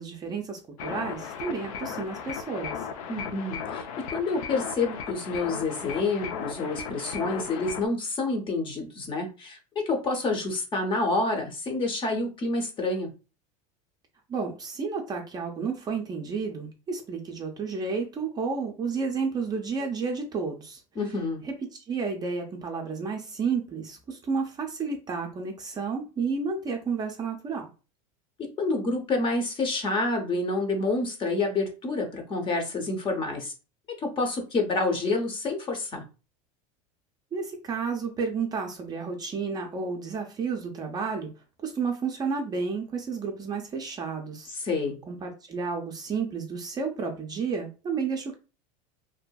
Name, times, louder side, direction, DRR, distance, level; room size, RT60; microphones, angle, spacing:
voice 1, 0.0-2.8 14.3-20.8 21.4-27.7 37.3-41.3 41.6-44.5 45.1-48.3, right 5 dB, 20° right, 2 dB, 0.5 m, -31 dB
sound 1, 0.8-7.9, left 7 dB, 90° left, 0.5 m, -36 dB
voice 2, 3.1-13.1 21.0-21.4 28.4-33.5 33.9-36.0 44.5-45.0, left 3 dB, 30° left, 4 dB, 0.7 m, -28 dB
2.7 x 2.4 x 2.2 m, 0.32 s
supercardioid pair, 135°, 18 cm